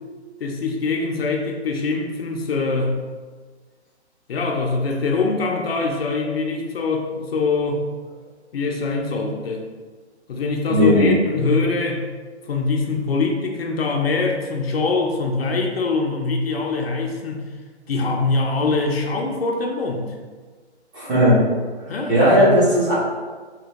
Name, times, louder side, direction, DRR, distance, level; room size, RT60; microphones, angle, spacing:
voice 1, 0.4-2.9 4.3-7.8 8.5-9.7 10.3-12.1 12.5-17.5 17.9-20.1 21.9-22.6, left 3 dB, 60° left, 1 dB, 0.5 m, -23 dB
voice 2, 10.7-11.1 20.9-21.4 22.1-22.9, equal, 15° right, -9 dB, 0.8 m, -16 dB
3.2 x 2.9 x 2.8 m, 1.4 s
hypercardioid pair, 145°, 34 cm